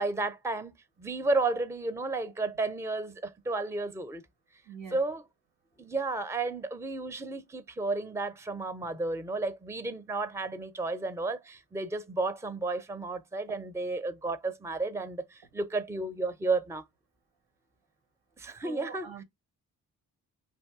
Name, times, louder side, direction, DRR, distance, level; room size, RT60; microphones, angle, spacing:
voice 1, 0.0-4.2 4.9-5.2 5.8-16.8 18.4-19.1, right 3 dB, 5° right, 0.5 m, -32 dB
voice 2, 4.6-5.0 18.6-19.2, right 6 dB, 85° right, 1.0 m, -43 dB
2.6 x 2.5 x 3.6 m
supercardioid pair, 45°, 41 cm